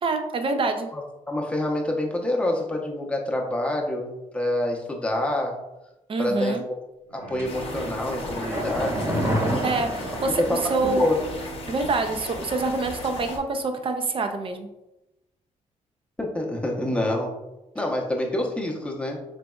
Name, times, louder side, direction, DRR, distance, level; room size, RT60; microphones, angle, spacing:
voice 1, 0.0-0.9 6.1-6.6 9.6-11.1 11.7-14.7, right 3 dB, 40° right, 7 dB, 0.5 m, -26 dB
voice 2, 0.9-5.6 6.2-6.6 7.1-9.5 10.4-11.2 16.2-17.3 17.7-19.2, left 1 dB, 10° left, -1 dB, 0.7 m, -27 dB
Bowed string instrument, 7.0-13.3 13.7-13.8, right 5 dB, 80° right, 1.4 m, -41 dB
sound 1, 7.4-13.4, left 2 dB, 45° left, 0.8 m, -37 dB
sound 2, 7.4-11.1 11.4-11.5, equal, 20° right, 1.0 m, -29 dB
4.0 x 3.3 x 2.3 m, 0.96 s
cardioid pair, 90°, 14 cm